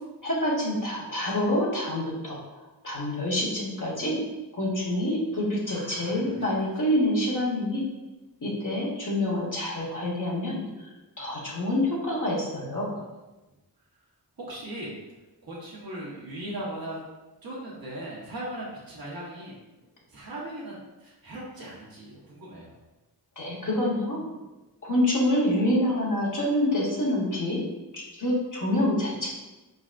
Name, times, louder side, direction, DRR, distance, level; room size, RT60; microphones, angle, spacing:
voice 1, 0.2-2.4 2.8-4.2 4.5-7.9 8.4-10.6 11.2-12.9 23.4-24.2 24.8-27.6 27.9-29.3, left 1 dB, 50° left, -5 dB, 1.4 m, -26 dB
voice 2, 5.7-6.4 11.2-11.3 12.9-13.1 14.4-14.9 15.4-17.0 17.4-19.5 20.1-22.7, right 1 dB, 60° right, -6 dB, 1.3 m, -38 dB
5.0 x 4.0 x 2.5 m, 1.1 s
wide cardioid pair, 65°, 41 cm